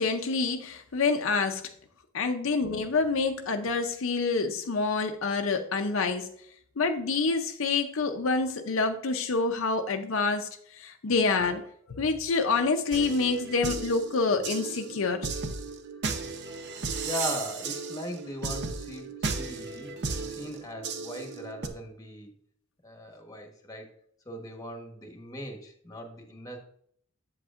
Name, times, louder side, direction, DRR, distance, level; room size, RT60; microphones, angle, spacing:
voice 1, 0.0-1.6 2.1-6.3 6.8-11.6 11.9-15.3, left 4 dB, 65° left, 5 dB, 0.6 m, -27 dB
sound 1, 12.9-21.7, right 4 dB, 55° right, 0.7 m, -35 dB
voice 2, 17.0-20.0 20.2-22.3 22.8-23.9 24.2-26.6, left 1 dB, 15° left, 3 dB, 1.1 m, -39 dB
7.9 x 7.7 x 2.5 m, 0.66 s
head